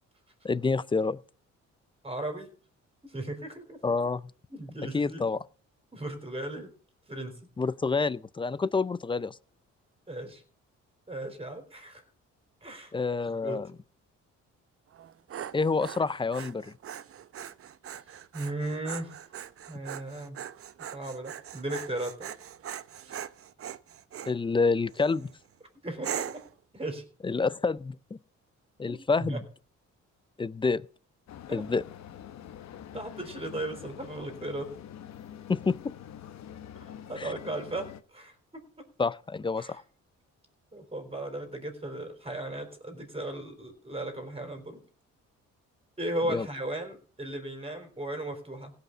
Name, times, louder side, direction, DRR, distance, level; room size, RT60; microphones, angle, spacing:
voice 1, 0.4-1.2 3.8-4.2 4.9-5.4 7.6-9.3 12.9-13.7 15.5-16.7 24.3-25.3 27.2-28.2 28.8-29.4 30.4-30.8 31.5-31.8 35.5-35.8 37.2-37.3 39.0-39.8 46.3-46.5, left 4 dB, 15° left, 0.4 m, -28 dB
voice 2, 2.0-2.5 3.0-3.8 4.5-5.2 5.9-6.7 7.1-7.5 10.1-10.4 11.1-12.0 12.6-12.9 13.4-13.6 18.3-19.2 19.7-20.4 20.9-22.4 25.8-26.4 26.7-27.0 28.9-29.4 31.5-31.8 32.9-34.7 37.1-38.9 39.6-39.8 40.7-44.8 46.0-48.7, right 1 dB, 20° right, 3.8 m, -36 dB
Dog, 14.9-24.4 24.9-25.3 26.0-26.5, right 9 dB, 50° right, 0.7 m, -41 dB
sound 1, 31.3-38.0, left 10 dB, 65° left, 0.9 m, -46 dB
16.5 x 5.6 x 6.6 m
cardioid pair, 90°, 30 cm